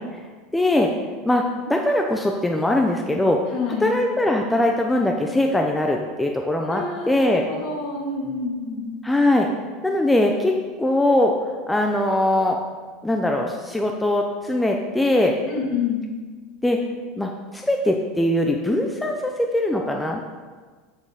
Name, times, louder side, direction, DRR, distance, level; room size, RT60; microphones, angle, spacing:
voice 1, 0.5-0.9 1.2-3.4 3.8-7.4 9.0-9.5 9.8-11.3 11.7-12.6 13.0-15.4 16.6-16.8 17.2-20.2, left 1 dB, 5° left, 2 dB, 0.6 m, -21 dB
voice 2, 3.5-3.9 6.7-8.8 15.5-16.0, left 4 dB, 55° left, -2 dB, 2.3 m, -28 dB
6.4 x 5.4 x 4.9 m, 1.4 s
supercardioid pair, 120°, 0 cm